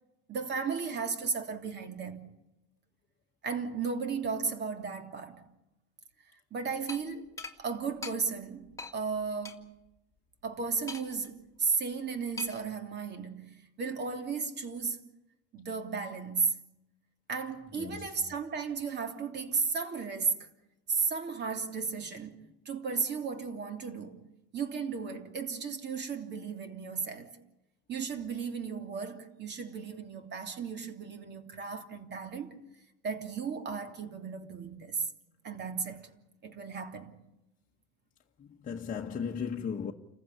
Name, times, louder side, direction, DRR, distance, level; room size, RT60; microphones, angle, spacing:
voice 1, 0.3-2.2 3.4-5.4 6.5-7.3 7.6-9.7 10.4-15.0 15.5-16.6 17.3-20.5 20.9-24.3 24.5-27.3 27.9-32.5 33.0-35.0 35.4-36.1 36.4-37.1, right 5 dB, 35° right, 3.0 m, -34 dB
sound 1, 6.9-7.0 7.4-7.6 8.0-8.2 8.8-8.9 9.4-9.6 10.9-11.3 12.4-12.7, left 3 dB, 10° left, 2.1 m, -41 dB
voice 2, 17.7-18.3 38.4-39.9, left 6 dB, 25° left, 1.3 m, -36 dB
29.5 x 15.0 x 9.8 m
cardioid pair, 130°, 30 cm